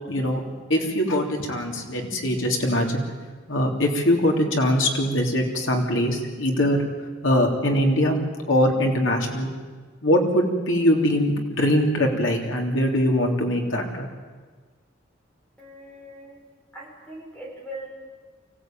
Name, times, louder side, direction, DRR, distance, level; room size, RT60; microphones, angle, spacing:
voice 1, 0.1-0.4 0.7-3.0 3.5-6.8 7.2-8.2 8.5-9.5 10.0-14.1, left 1 dB, 90° left, 1 dB, 3.4 m, -22 dB
voice 2, 15.6-16.4 16.7-17.9, right 1 dB, 5° left, -2 dB, 5.6 m, -40 dB
24.5 x 16.0 x 9.2 m, 1.4 s
head